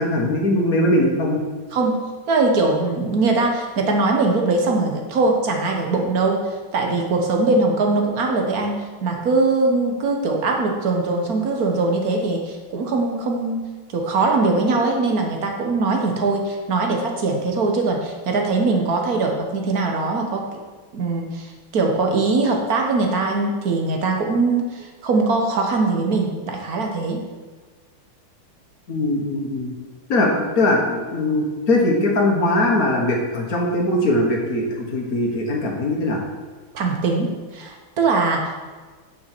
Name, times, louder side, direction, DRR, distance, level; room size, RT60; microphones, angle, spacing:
voice 1, 0.0-1.4 28.9-29.7 30.1-36.2, left 1 dB, 45° left, 0 dB, 1.7 m, -20 dB
voice 2, 2.3-6.4 6.7-8.7 9.0-13.6 13.9-20.6 20.9-27.2 36.7-38.5, right 3 dB, 50° right, 2 dB, 1.4 m, -21 dB
9.5 x 6.3 x 4.5 m, 1.4 s
omnidirectional pair, 2.4 m